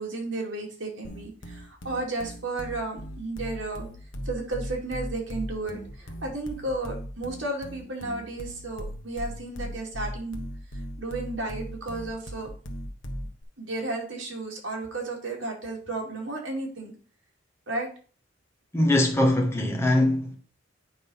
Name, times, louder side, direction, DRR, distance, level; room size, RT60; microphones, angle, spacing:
voice 1, 0.0-3.9 4.3-10.4 11.0-12.5 13.6-16.9 17.7-17.9, right 2 dB, 70° right, 2.4 m, -33 dB
sound 1, 1.0-13.4, equal, 70° left, 1.2 m, -38 dB
voice 2, 18.7-20.3, left 1 dB, 15° left, 1.2 m, -22 dB
8.9 x 3.8 x 5.5 m
head